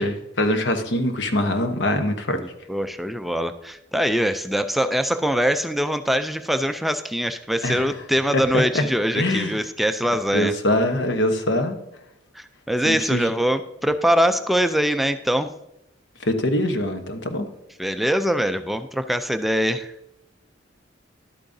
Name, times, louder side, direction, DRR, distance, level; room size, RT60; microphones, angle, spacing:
voice 1, 0.0-2.4 7.6-7.8 8.3-8.8 9.1-9.6 10.3-11.8 12.8-13.3 16.2-17.4, left 1 dB, 80° left, 6 dB, 1.0 m, -23 dB
voice 2, 2.7-10.5 12.4-15.5 17.8-19.9, equal, ahead, 9 dB, 0.3 m, -23 dB
11.5 x 8.5 x 2.6 m, 0.88 s
head